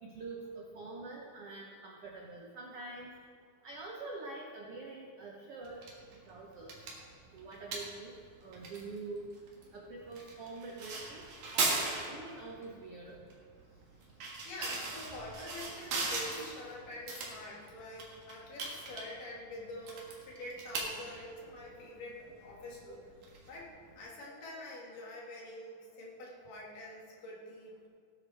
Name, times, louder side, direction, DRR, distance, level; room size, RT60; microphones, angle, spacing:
voice 1, 0.0-3.1 3.6-5.8 6.3-6.7 7.3-8.1 8.4-9.3 9.7-11.3 11.5-13.2, right 3 dB, 85° right, -1 dB, 1.3 m, -45 dB
sound 1, 5.6-24.0, right 3 dB, 60° right, 3.1 m, -40 dB
voice 2, 14.5-23.0 23.5-27.9, left 1 dB, 65° left, -4 dB, 3.6 m, -46 dB
17.0 x 10.5 x 3.4 m, 2.2 s
omnidirectional pair, 4.3 m